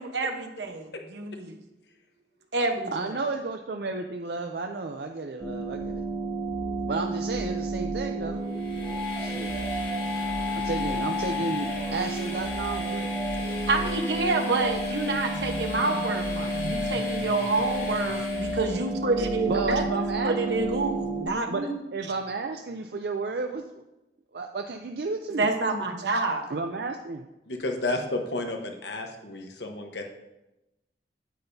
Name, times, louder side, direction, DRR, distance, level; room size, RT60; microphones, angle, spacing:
voice 1, 0.0-1.5 2.5-3.2 13.4-19.8 20.2-21.8 25.4-26.4, right 3 dB, 80° right, 4 dB, 1.1 m, -28 dB
voice 2, 2.9-6.0 6.9-8.4 9.2-9.6 10.5-13.1 15.3-16.0 16.3-17.0 19.5-20.8 21.5-23.8 24.3-25.5 26.5-27.2, right 3 dB, 65° right, 4 dB, 0.5 m, -33 dB
sound 1, 5.4-21.2, right 1 dB, 20° right, 1.0 m, -31 dB
Train, 8.4-18.9, left 3 dB, 50° left, 2.8 m, -40 dB
voice 3, 27.5-30.0, left 2 dB, 80° left, 3 dB, 1.2 m, -31 dB
9.2 x 8.8 x 2.7 m, 0.95 s
head